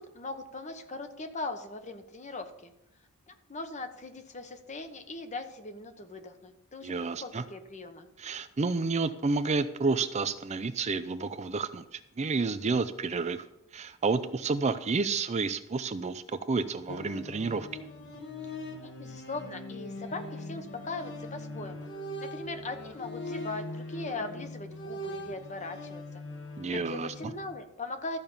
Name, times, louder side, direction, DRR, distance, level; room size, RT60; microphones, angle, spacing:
voice 1, 0.0-2.7 3.3-8.1 18.8-21.9 22.2-26.0 26.7-28.2, left 3 dB, 35° left, 7 dB, 1.0 m, -40 dB
voice 2, 6.8-7.4 8.2-13.4 13.7-17.7 26.6-27.1, right 4 dB, 30° right, 11 dB, 0.5 m, -30 dB
sound 1, 16.9-27.5, left 1 dB, 55° left, 1.7 m, -41 dB
13.5 x 5.3 x 7.2 m, 0.84 s
head